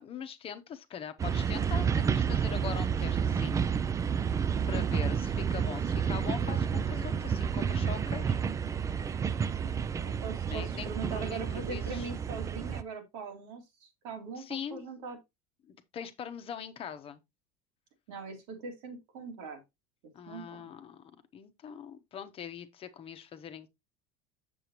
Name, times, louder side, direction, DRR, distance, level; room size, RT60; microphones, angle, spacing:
voice 1, 0.0-3.7 4.2-8.4 10.5-12.1 14.4-14.8 15.7-17.2 20.1-21.0 21.3-23.7, left 8 dB, 35° left, 0.9 m, -42 dB
sound 1, 1.2-12.8, right 7 dB, 20° right, 0.4 m, -30 dB
voice 2, 9.6-15.2 18.1-19.6 20.3-20.7, right 4 dB, 85° right, 2.3 m, -41 dB
7.0 x 6.7 x 2.9 m
cardioid pair, 135°, 17 cm